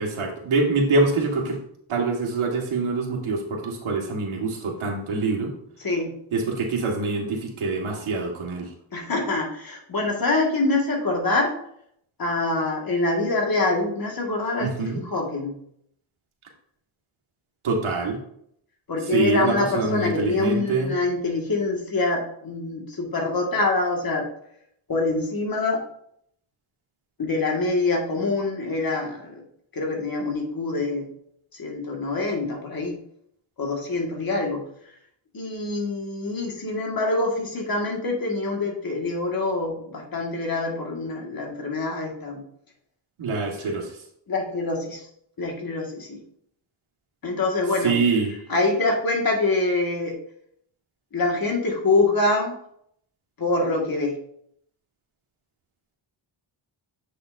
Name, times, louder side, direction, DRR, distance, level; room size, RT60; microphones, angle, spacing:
voice 1, 0.0-1.6 1.9-5.5 6.3-8.7 14.6-15.0 17.6-18.2 19.1-20.9 43.2-43.9 47.8-48.3, right 3 dB, 85° right, 1 dB, 1.7 m, -25 dB
voice 2, 5.8-6.1 8.9-11.6 12.2-15.6 18.9-24.3 24.9-25.8 27.2-29.4 29.7-31.1 31.5-33.0 33.6-34.6 35.3-42.4 44.3-45.0 45.4-46.2 47.2-48.0 48.5-50.2 51.1-52.5 53.4-54.2, left 2 dB, 45° left, 0 dB, 1.9 m, -25 dB
7.7 x 6.9 x 2.6 m, 0.69 s
wide cardioid pair, 105°, 48 cm